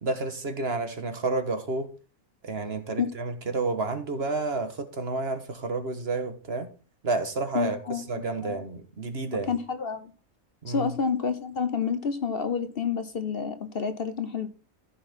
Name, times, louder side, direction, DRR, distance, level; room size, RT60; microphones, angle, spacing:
voice 1, 0.0-1.9 2.4-6.7 7.0-9.5 10.6-10.9, right 3 dB, 50° right, 8 dB, 1.6 m, -30 dB
voice 2, 7.5-8.0 8.4-8.6 9.5-10.1 10.7-14.5, left 6 dB, 50° left, 10 dB, 1.0 m, -29 dB
14.5 x 5.8 x 4.3 m, 0.34 s
omnidirectional pair, 1.4 m